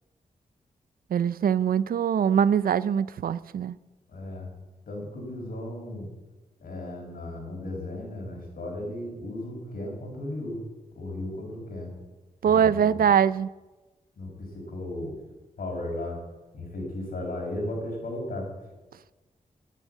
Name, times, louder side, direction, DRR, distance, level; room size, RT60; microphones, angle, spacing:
voice 1, 1.1-3.8 12.4-13.5, right 8 dB, 85° right, 0.5 m, -23 dB
voice 2, 4.1-4.5 4.9-6.1 6.6-10.6 10.9-11.9 12.4-13.0 14.2-15.2 15.6-16.2 16.5-18.5, left 1 dB, 90° left, 5.3 m, -35 dB
11.0 x 10.0 x 9.3 m
wide cardioid pair, 140°, 15 cm